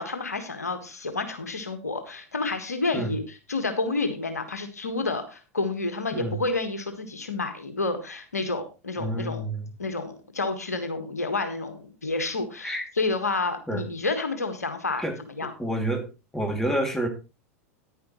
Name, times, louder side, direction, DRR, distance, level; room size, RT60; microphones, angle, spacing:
voice 1, 0.0-3.2 3.5-9.4 9.8-15.0 15.4-15.5, left 3 dB, 90° left, 8 dB, 1.6 m, -29 dB
voice 2, 9.0-9.7 12.6-12.9 13.7-13.8 15.0-15.2 15.6-16.1 16.3-17.1, right 1 dB, 5° left, 3 dB, 2.7 m, -28 dB
10.0 x 10.0 x 3.1 m, 0.30 s
hypercardioid pair, 90°, 8 cm